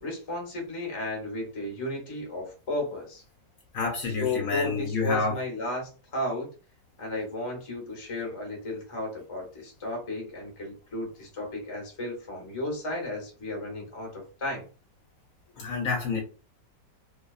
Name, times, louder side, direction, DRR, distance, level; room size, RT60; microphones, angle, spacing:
voice 1, 0.0-3.2 4.0-6.5 7.0-14.6, left 2 dB, 30° left, -1 dB, 0.5 m, -34 dB
voice 2, 3.7-5.4 15.6-16.2, left 4 dB, 65° left, 1 dB, 0.9 m, -28 dB
2.7 x 2.2 x 2.3 m, 0.36 s
omnidirectional pair, 1.8 m